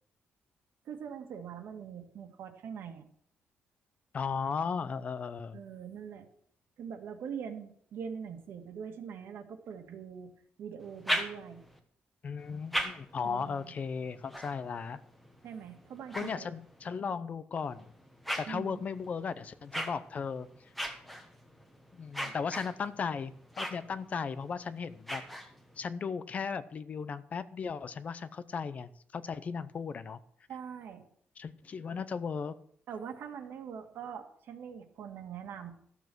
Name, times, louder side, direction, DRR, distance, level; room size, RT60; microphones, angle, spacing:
voice 1, 0.9-3.1 5.5-6.3 6.8-10.3 10.6-11.6 13.2-13.7 15.4-16.5 18.5-18.9 22.2-22.3 30.5-31.1 32.9-35.7, right 7 dB, 70° right, 6 dB, 1.7 m, -43 dB
voice 2, 4.1-5.6 12.2-15.0 16.1-17.9 18.4-20.5 21.9-25.2 25.8-30.2 31.4-32.5, left 5 dB, 35° left, 14 dB, 0.6 m, -36 dB
sound 1, 10.8-11.8 12.4-17.0 17.6-25.9, equal, ahead, 1.3 m, -40 dB
13.5 x 7.2 x 6.1 m, 0.64 s
wide cardioid pair, 175°, 4 cm